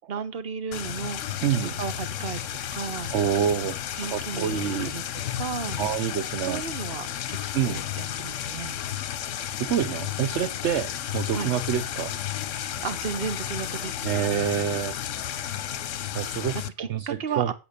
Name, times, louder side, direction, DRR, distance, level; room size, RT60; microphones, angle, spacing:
voice 1, 0.1-2.5 2.7-3.1 4.0-5.0 5.4-5.8 6.4-7.4 7.6-8.8 11.3-11.5 12.8-14.1 16.8-17.5, right 6 dB, 50° right, 12 dB, 1.3 m, -34 dB
sound 1, 0.7-16.7, left 10 dB, 80° left, 1.1 m, -32 dB
voice 2, 1.4-1.8 3.1-4.9 5.8-6.6 7.5-7.8 9.6-12.1 14.0-15.0 16.1-17.5, right 9 dB, 70° right, 12 dB, 1.0 m, -27 dB
9.0 x 7.9 x 6.7 m, 0.32 s
omnidirectional pair, 1.3 m